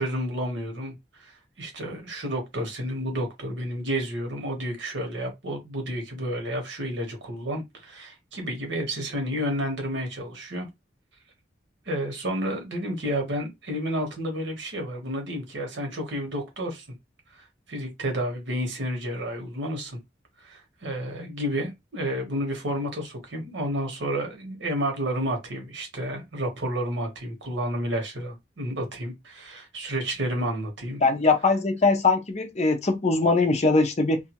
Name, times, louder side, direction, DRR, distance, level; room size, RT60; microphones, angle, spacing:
voice 1, 0.0-1.3 1.6-10.7 11.9-16.8 17.3-20.0 20.4-31.0, equal, 90° right, 1.2 m, -31 dB
voice 2, 31.0-34.2, left 3 dB, 40° left, 0.5 m, -21 dB
2.6 x 2.3 x 2.9 m
head